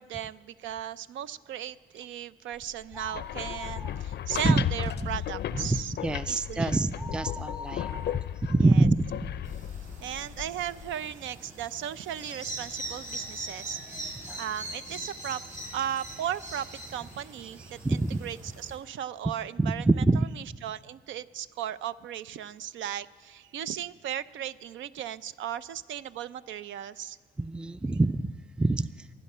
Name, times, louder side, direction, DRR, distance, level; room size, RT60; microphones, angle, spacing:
voice 1, 0.0-5.9 6.3-6.7 8.7-8.8 10.0-19.9 20.1-27.2, right 10 dB, 75° right, 16 dB, 0.5 m, -36 dB
sound 1, 2.9-10.9, left 11 dB, 55° left, 0.5 m, -35 dB
sound 2, 2.9-4.5 4.8-4.9 5.3-9.7 10.3-10.4 11.1-11.2 11.5-11.6, left 3 dB, 25° right, 0.8 m, -44 dB
voice 2, 5.5-7.9 8.5-9.0 14.2-14.4 17.8-18.3 19.6-20.3 27.4-28.9, right 2 dB, 5° right, 14 dB, 0.3 m, -25 dB
sound 3, 9.4-18.8, right 1 dB, 40° right, 6.1 m, -42 dB
23.0 x 10.0 x 5.5 m, 1.5 s
cardioid pair, 90°, 20 cm